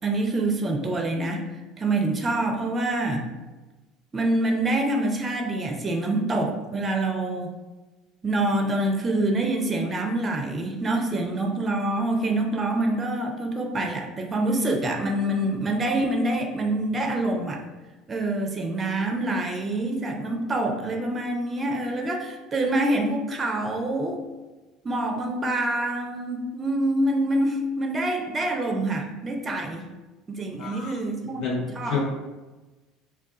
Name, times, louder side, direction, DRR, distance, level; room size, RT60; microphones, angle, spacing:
voice 1, 0.0-1.4 1.8-3.3 4.1-7.5 8.2-17.6 18.1-24.2 24.8-29.9 30.3-31.4 31.8-32.0, right 2 dB, 30° right, 3 dB, 0.5 m, -26 dB
voice 2, 30.6-30.9 31.3-32.0, left 5 dB, 60° left, -4 dB, 0.8 m, -30 dB
2.3 x 2.3 x 3.7 m, 1.2 s
hypercardioid pair, 70°, 0 cm